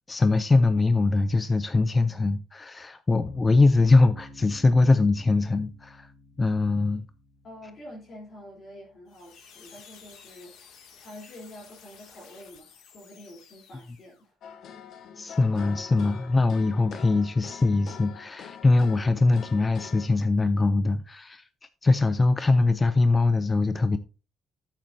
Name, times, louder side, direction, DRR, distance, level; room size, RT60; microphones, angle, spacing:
voice 1, 0.0-6.1 6.4-7.0 15.2-21.4 21.8-24.0, left 3 dB, 15° left, 0.4 m, -22 dB
sound 1, 3.3-10.4, left 1 dB, 75° right, 1.9 m, -51 dB
voice 2, 7.4-14.3, left 1 dB, 35° left, 3.3 m, -47 dB
sound 2, 9.1-14.3, left 7 dB, 70° left, 2.3 m, -53 dB
sound 3, 14.4-20.1, left 7 dB, 50° left, 0.9 m, -44 dB
13.5 x 7.4 x 2.7 m
cardioid pair, 170°, 0 cm